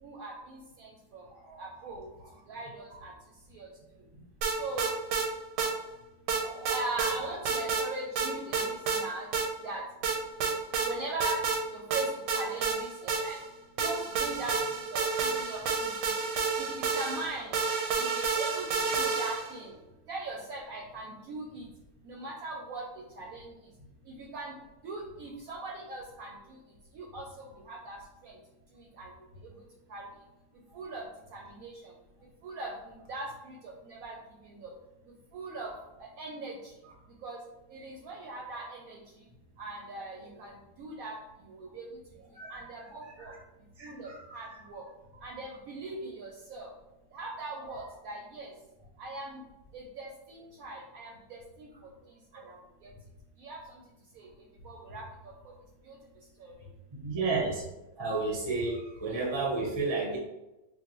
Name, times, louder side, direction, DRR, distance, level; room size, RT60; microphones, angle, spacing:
voice 1, 0.0-1.2 1.6-2.1 2.5-3.1 3.5-3.7 4.6-4.9 6.7-9.3 9.6-9.8 10.8-11.4 11.7-13.4 13.8-15.9 16.6-16.7 16.9-17.6 18.0-18.7 19.0-19.7 20.1-21.7 22.0-22.8 23.2-23.5 24.2-24.5 24.8-26.3 26.9-28.0 28.2-28.4 29.0-29.1 29.9-30.0 30.7-31.0 31.3-31.9 32.4-33.6 33.8-34.1 34.5-34.7 35.3-35.7 36.2-36.6 37.2-37.4 37.7-39.0 39.6-40.5 40.8-41.2 41.5-41.9 42.5-43.3 43.8-44.8 45.2-46.7 47.1-48.5 49.0-49.4 49.7-51.7 52.5-52.6 53.4-53.6 54.2-54.3 54.6-55.0 55.9-56.0 56.4-56.5, right 2 dB, 70° right, -1 dB, 0.9 m, -40 dB
voice 2, 1.3-2.3 2.9-3.0 4.1-4.2 6.3-6.8 30.8-30.9 36.8-36.9 39.9-40.0 42.3-43.4 43.8-44.5 47.8-47.9 52.3-52.5 57.0-57.6 58.0-60.2, right 3 dB, 30° right, -3 dB, 0.5 m, -34 dB
sound 1, 4.4-5.3 5.6-5.7 6.3-7.2 7.5-7.9 8.2-9.0 9.3-9.5 10.0-10.9 11.2-11.6 11.9-13.5 13.8-19.6, right 5 dB, 85° right, 1.2 m, -30 dB
4.6 x 2.2 x 2.9 m, 0.98 s
omnidirectional pair, 1.8 m